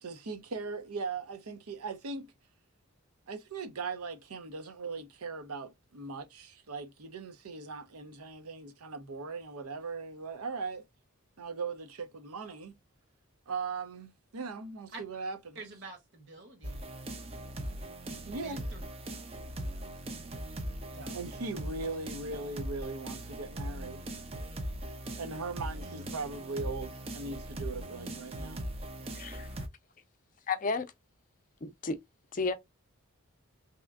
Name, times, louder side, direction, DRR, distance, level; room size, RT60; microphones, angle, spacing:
voice 1, 0.0-2.3 3.3-10.9 11.4-12.7 13.5-15.6 18.3-18.6 21.1-24.1 25.2-28.7, right 4 dB, 85° right, 0.6 m, -39 dB
voice 2, 15.5-16.8 18.1-18.8 20.9-21.2, right 3 dB, 50° right, 1.0 m, -47 dB
sound 1, 16.6-29.7, right 1 dB, 25° right, 0.4 m, -40 dB
voice 3, 29.2-29.5 30.5-30.9 31.6-32.0 32.3-32.5, left 4 dB, 35° left, 0.5 m, -32 dB
3.4 x 2.8 x 2.3 m
head